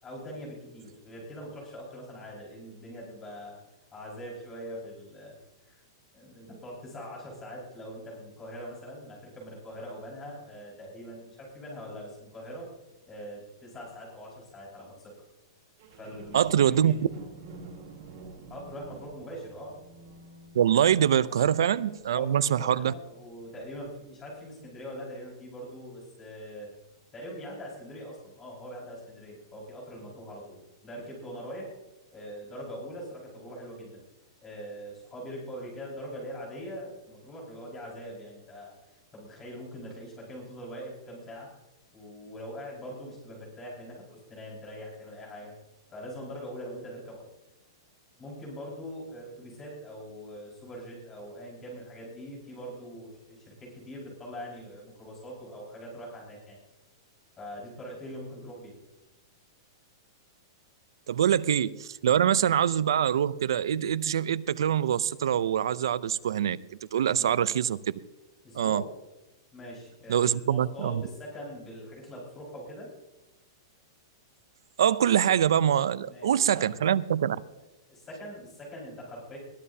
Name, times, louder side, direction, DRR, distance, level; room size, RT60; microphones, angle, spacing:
voice 1, 0.0-3.6 3.9-5.4 5.6-5.8 6.1-12.7 13.1-15.1 15.9-17.0 18.5-19.7 21.3-21.5 22.1-26.7 27.1-31.7 32.1-34.0 34.4-41.5 41.9-45.5 45.9-47.3 48.2-56.6 57.4-58.7 61.1-61.2 62.0-62.1 67.2-67.5 68.4-68.8 69.5-72.9 75.9-76.8 77.9-79.4, equal, 15° left, 5.2 m, -42 dB
sound 1, 15.8-23.2 23.8-23.9, right 3 dB, 45° right, 4.1 m, -49 dB
voice 2, 16.3-16.9 20.5-22.9 61.1-66.6 66.9-67.8 68.5-68.8 70.1-71.0 74.8-77.4, right 9 dB, 80° right, 0.5 m, -24 dB
21.0 x 14.0 x 2.8 m
supercardioid pair, 170°, 2 cm